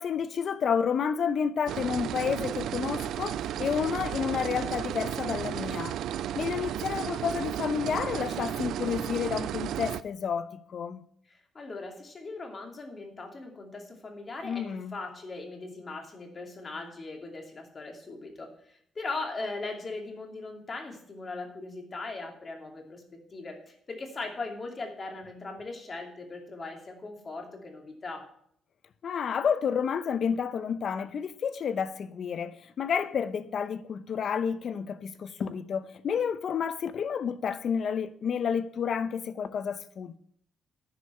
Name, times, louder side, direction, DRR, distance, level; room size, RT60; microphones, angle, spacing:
voice 1, 0.0-6.0 6.4-11.0 14.4-15.0 29.0-40.2, left 7 dB, 60° left, 0.7 m, -30 dB
sound 1, 1.7-10.0, right 11 dB, 80° right, 0.4 m, -33 dB
voice 2, 11.3-28.3, left 3 dB, 35° left, 2.6 m, -39 dB
10.0 x 5.5 x 8.3 m
cardioid pair, 90°, 0 cm